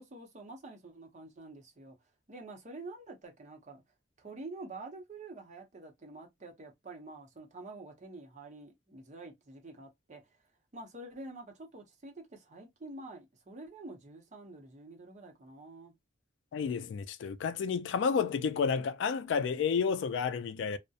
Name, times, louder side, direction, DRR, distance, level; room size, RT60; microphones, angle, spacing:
voice 1, 0.0-2.0 2.3-3.8 4.2-10.2 10.7-15.9, right 2 dB, 40° right, 0.7 m, -47 dB
voice 2, 16.5-20.8, left 6 dB, 70° left, 0.3 m, -31 dB
2.3 x 2.0 x 2.6 m
head